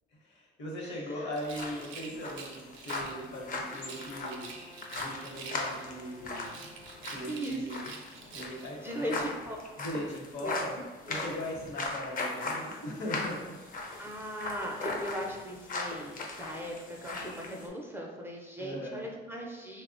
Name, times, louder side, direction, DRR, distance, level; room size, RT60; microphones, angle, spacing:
voice 1, 0.2-4.5 5.0-6.7 7.1-7.9 8.2-9.2 9.8-10.8 11.1-13.5 18.6-19.1, equal, 65° left, -2 dB, 0.8 m, -39 dB
voice 2, 0.8-1.3 1.7-1.9 7.3-7.6 8.8-9.6 10.4-11.3 14.0-16.7 17.0-19.8, equal, 10° right, -1 dB, 0.4 m, -39 dB
Rattle, 1.3-3.2 3.7-5.9 6.3-8.8, right 5 dB, 90° right, 0.4 m, -47 dB
sound 1, 1.4-17.7, left 3 dB, 45° left, 0.5 m, -39 dB
Trumpet, 2.8-7.4, left 1 dB, 90° left, 1.0 m, -53 dB
3.1 x 2.0 x 2.5 m, 1.3 s
cardioid pair, 90°, 20 cm